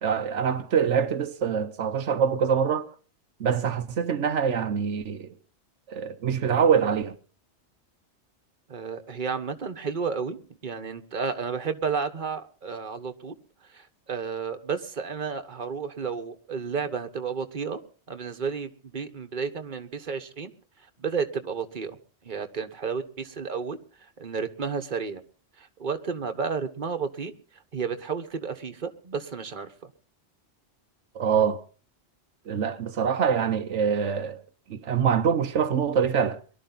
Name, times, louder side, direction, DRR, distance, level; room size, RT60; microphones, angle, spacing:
voice 1, 0.0-2.9 3.4-5.3 5.9-7.2 31.1-31.6 32.5-34.4 34.7-36.4, right 7 dB, 85° right, 1.2 m, -24 dB
voice 2, 8.7-10.4 10.6-13.4 13.7-17.8 18.1-20.5 21.0-22.0 22.2-25.2 25.6-27.3 27.7-29.9, right 5 dB, 45° right, 1.4 m, -32 dB
23.0 x 12.5 x 4.0 m
omnidirectional pair, 1.2 m